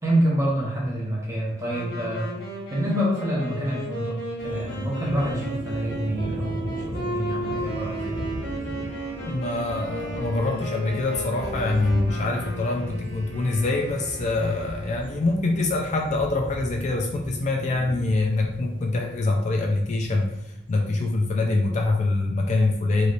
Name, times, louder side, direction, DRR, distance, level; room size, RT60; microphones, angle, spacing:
voice 1, 0.0-2.3 2.7-8.2, equal, 15° right, -5 dB, 0.9 m, -27 dB
Wind instrument woodwind instrument, 1.6-13.3, right 1 dB, 70° left, 1.1 m, -34 dB
sound 1, 4.4-20.5, equal, 45° right, 1.1 m, -37 dB
Wind instrument woodwind instrument 2, 7.4-15.5, right 1 dB, 65° right, 0.7 m, -43 dB
voice 2, 9.2-23.1, left 2 dB, 40° left, 2 dB, 0.3 m, -24 dB
3.2 x 2.7 x 2.5 m, 0.82 s
head